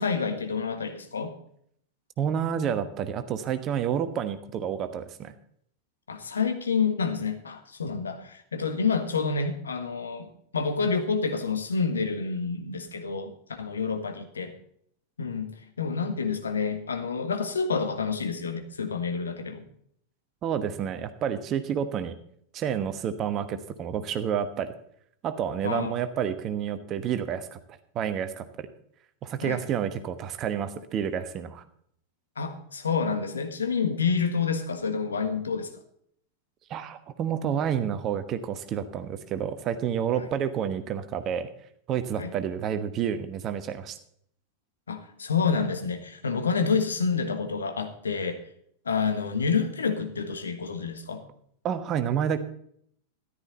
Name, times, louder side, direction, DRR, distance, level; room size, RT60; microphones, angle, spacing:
voice 1, 0.0-1.3 6.1-14.5 15.2-19.6 25.6-26.0 29.4-29.6 32.4-35.7 40.2-40.3 42.2-42.3 44.9-48.4 48.8-51.2, left 5 dB, 70° left, 7 dB, 1.6 m, -28 dB
voice 2, 2.2-5.3 20.4-22.2 22.5-24.7 25.2-27.6 27.9-28.7 29.2-31.6 36.7-41.5 41.9-44.0 51.6-52.4, right 8 dB, 35° right, 10 dB, 1.2 m, -29 dB
14.0 x 11.5 x 4.1 m, 0.67 s
figure-of-eight pair, 90°, 0 cm